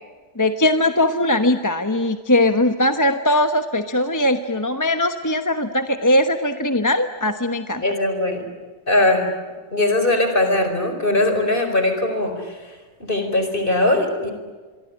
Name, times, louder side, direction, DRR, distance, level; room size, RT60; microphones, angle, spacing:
voice 1, 0.4-7.8, left 1 dB, 15° left, 8 dB, 1.0 m, -20 dB
voice 2, 7.8-8.4 8.9-9.3 9.7-12.7 13.0-14.3, left 2 dB, 40° left, 6 dB, 4.9 m, -20 dB
26.0 x 23.0 x 9.8 m, 1.4 s
omnidirectional pair, 1.4 m